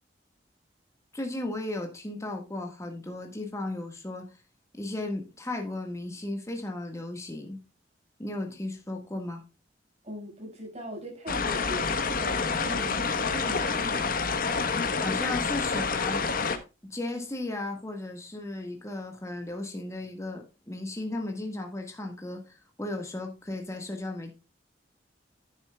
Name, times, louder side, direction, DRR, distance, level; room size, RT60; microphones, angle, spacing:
voice 1, 1.1-4.3 4.7-7.6 8.2-9.4 14.9-16.2 16.8-24.3, left 2 dB, 15° left, 1.6 m, -35 dB
voice 2, 10.0-14.1, equal, 35° right, 6.1 m, -40 dB
sound 1, 11.3-16.6, left 4 dB, 50° left, 1.2 m, -28 dB
10.5 x 10.5 x 2.3 m
head